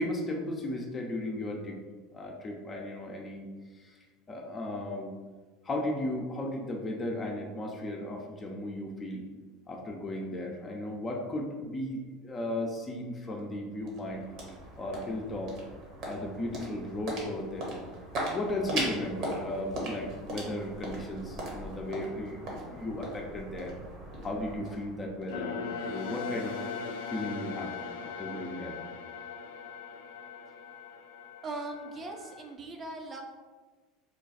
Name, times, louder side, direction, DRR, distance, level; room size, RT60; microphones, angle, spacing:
voice 1, 0.0-1.8 2.1-3.5 3.8-4.0 4.3-5.1 5.6-9.3 9.7-14.3 14.8-15.6 16.0-17.7 18.3-23.7 24.2-25.5 25.9-26.6 27.1-27.7 28.0-28.7, left 1 dB, 25° left, 0 dB, 0.6 m, -35 dB
sound 1, 13.4-25.8, right 1 dB, 55° right, 1.2 m, -39 dB
sound 2, 25.3-32.5, left 5 dB, 75° left, 0.4 m, -39 dB
voice 2, 31.4-33.2, right 2 dB, 30° right, 3 dB, 0.6 m, -39 dB
3.2 x 2.3 x 4.0 m, 1.4 s
hypercardioid pair, 90°, 0 cm